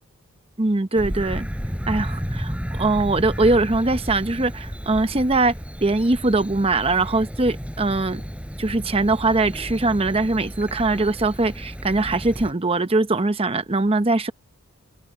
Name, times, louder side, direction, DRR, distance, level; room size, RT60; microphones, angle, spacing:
voice 1, 0.6-1.5 1.9-5.5 5.8-8.2 8.6-14.3, right 2 dB, 25° right, 0.9 m, -21 dB
Bird vocalization bird call bird song, 0.9-12.5, equal, 5° right, 6.0 m, -32 dB
open air
head